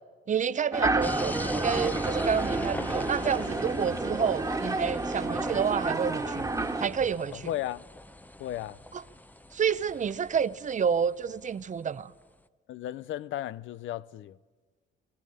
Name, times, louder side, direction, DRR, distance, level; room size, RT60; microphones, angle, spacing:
voice 1, 0.3-6.5 6.8-7.5 8.9-9.0 9.5-12.1, right 7 dB, 40° right, 0.6 m, -29 dB
sound 1, 0.7-6.9, right 2 dB, 15° right, 1.5 m, -30 dB
sound 2, 1.0-11.7, left 1 dB, 10° left, 0.7 m, -39 dB
voice 2, 7.3-7.8 8.4-8.8 12.7-14.4, left 12 dB, 75° left, 0.5 m, -35 dB
22.5 x 16.0 x 8.7 m
cardioid pair, 90°, 20 cm